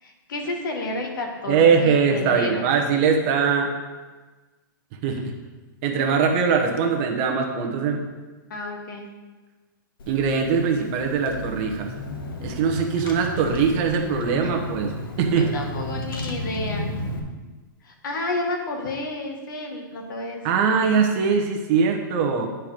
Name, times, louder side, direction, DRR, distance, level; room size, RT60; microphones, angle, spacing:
voice 1, 0.0-2.6 8.5-9.1 14.4-14.5 15.3-16.9 17.8-20.7, left 2 dB, 65° left, 2 dB, 1.8 m, -31 dB
voice 2, 1.5-3.7 5.0-5.3 5.8-8.0 10.1-11.9 12.4-15.5 20.4-22.5, right 6 dB, 30° right, 3 dB, 1.0 m, -21 dB
Car / Engine, 10.0-17.2, left 2 dB, 85° left, 1.5 m, -33 dB
10.5 x 4.6 x 5.1 m, 1.3 s
hypercardioid pair, 165°, 11 cm